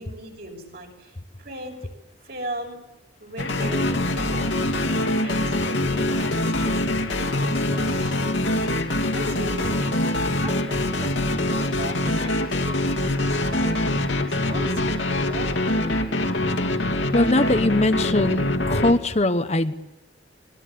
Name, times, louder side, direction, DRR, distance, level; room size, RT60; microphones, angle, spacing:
voice 1, 0.0-1.9 2.2-2.8 3.2-4.6 5.2-6.8 7.2-8.4 9.1-10.0 10.4-11.2 11.5-15.8, right 1 dB, 55° right, 3 dB, 6.8 m, -38 dB
sound 1, 3.4-18.9, left 1 dB, 80° left, 2.6 m, -24 dB
voice 2, 17.1-19.7, left 2 dB, 35° left, 9 dB, 1.1 m, -21 dB
25.0 x 21.5 x 8.5 m, 0.91 s
head